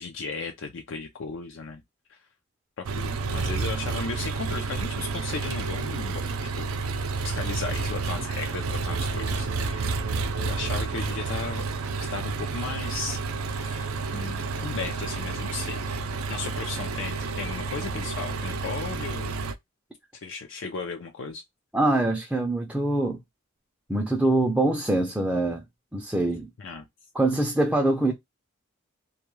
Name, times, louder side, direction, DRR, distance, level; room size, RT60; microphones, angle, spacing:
voice 1, 0.0-1.8 2.1-2.2 2.8-6.2 6.6-6.8 7.2-10.1 10.3-11.6 12.0-13.2 13.5-15.8 16.3-19.3 20.1-21.4 26.6-26.8, left 4 dB, 60° left, 0.5 m, -36 dB
Engine, 2.8-19.5, right 4 dB, 80° right, 0.4 m, -30 dB
voice 2, 21.7-23.2 23.9-25.6 25.9-26.5 27.1-28.1, right 2 dB, 5° right, 0.4 m, -24 dB
2.3 x 2.2 x 3.0 m
head